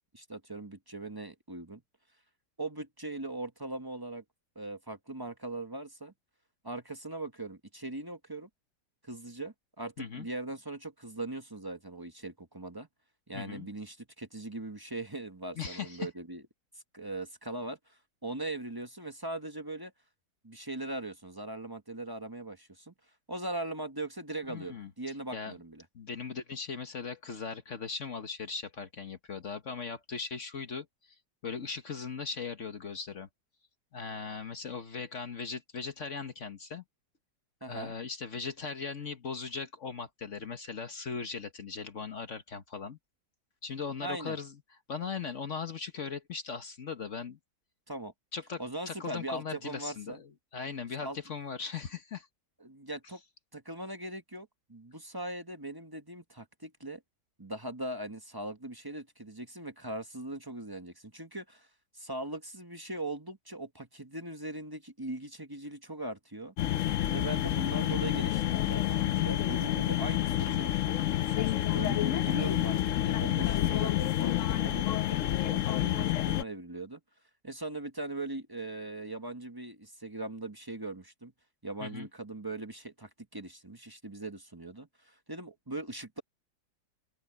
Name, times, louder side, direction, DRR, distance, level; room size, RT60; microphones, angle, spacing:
voice 1, 0.1-1.8 2.6-4.2 4.5-6.1 6.6-8.5 9.0-12.9 13.3-16.4 16.9-19.9 20.4-22.9 23.3-25.8 37.6-37.9 44.0-44.4 47.9-48.1 48.6-50.2 51.0-51.2 52.6-53.2 53.5-57.0 57.4-61.7 61.9-66.5 67.1-71.1 71.7-77.0 77.4-81.3 81.6-86.2, right 2 dB, 15° right, 1.1 m, -40 dB
voice 2, 13.3-13.7 15.6-16.1 24.5-24.9 25.3-25.5 25.9-31.1 31.4-33.3 33.9-36.8 37.7-43.0 43.6-44.6 44.9-47.4 48.3-52.3 66.8-67.2 81.8-82.1, left 5 dB, 50° left, 1.4 m, -39 dB
sound 1, 66.6-76.4, left 13 dB, 65° left, 0.8 m, -29 dB
open air
omnidirectional pair, 1.8 m